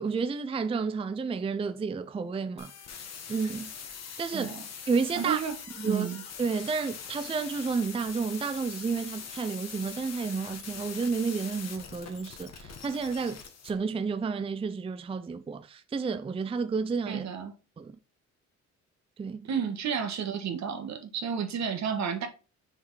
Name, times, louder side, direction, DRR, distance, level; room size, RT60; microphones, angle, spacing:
voice 1, 0.0-2.7 3.3-3.7 4.2-4.5 4.9-5.4 5.8-6.1 6.4-13.4 13.6-17.3 17.8-17.9 19.2-19.4, right 5 dB, 20° right, 0.4 m, -31 dB
sound 1, 2.6-13.7, left 6 dB, 55° left, 1.4 m, -43 dB
voice 2, 4.3-4.6 5.1-5.5 5.8-6.2 17.1-17.5 19.5-22.3, right 7 dB, 65° right, 1.4 m, -31 dB
6.4 x 3.6 x 4.7 m
cardioid pair, 90°, 30 cm